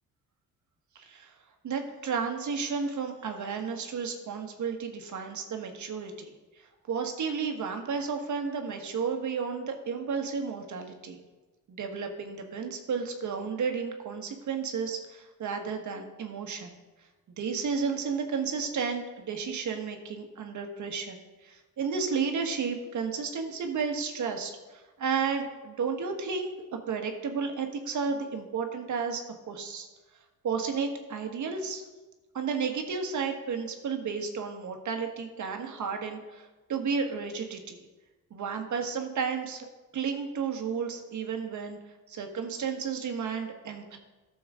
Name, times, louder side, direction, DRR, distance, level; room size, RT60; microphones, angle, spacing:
voice 1, 0.9-1.3 1.6-6.3 6.6-11.2 11.7-16.7 17.4-26.5 26.9-29.9 30.4-31.8 32.3-37.8 38.3-39.7 39.9-41.8 42.1-44.0, right 5 dB, 55° right, 4 dB, 1.5 m, -32 dB
12.5 x 7.0 x 3.7 m, 1.2 s
cardioid pair, 85°, 34 cm